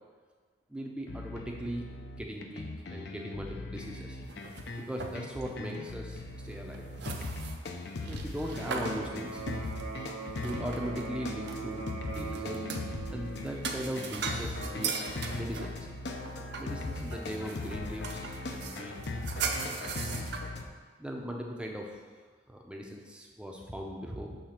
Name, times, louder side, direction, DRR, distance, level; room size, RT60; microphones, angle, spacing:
voice 1, 0.7-1.9 2.1-4.2 4.9-6.9 8.1-9.4 10.3-12.6 13.1-15.0 15.3-15.9 16.6-19.0 19.3-19.7 21.0-22.0 22.5-24.4, equal, 5° right, 0 dB, 0.5 m, -39 dB
sound 1, 1.1-20.7, left 2 dB, 55° left, 0.5 m, -39 dB
sound 2, 4.2-5.5 5.7-5.9 6.5-11.1 11.5-12.9 13.4-20.4, right 5 dB, 55° right, 0.5 m, -39 dB
Electric guitar, 8.6-16.6, right 3 dB, 80° right, 1.4 m, -43 dB
6.5 x 3.3 x 5.7 m, 1.6 s
head